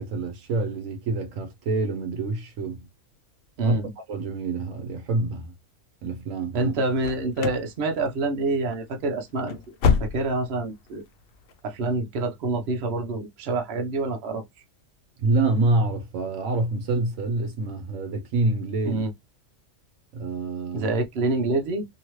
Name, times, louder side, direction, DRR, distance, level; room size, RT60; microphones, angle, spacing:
voice 1, 0.0-2.9 3.6-3.8 4.1-5.5 6.0-6.7 15.2-19.0 20.1-20.9, right 3 dB, 75° right, 1.1 m, -26 dB
voice 2, 3.6-3.9 6.5-9.5 10.0-11.0 11.6-14.4 18.8-19.1 20.7-21.8, right 2 dB, 55° right, 1.0 m, -27 dB
sound 1, 7.0-7.7 8.0-8.4 8.7-8.9 9.3-10.6 10.9-11.0 11.5-11.6, left 6 dB, 65° left, 0.6 m, -26 dB
3.0 x 2.7 x 3.0 m
omnidirectional pair, 1.4 m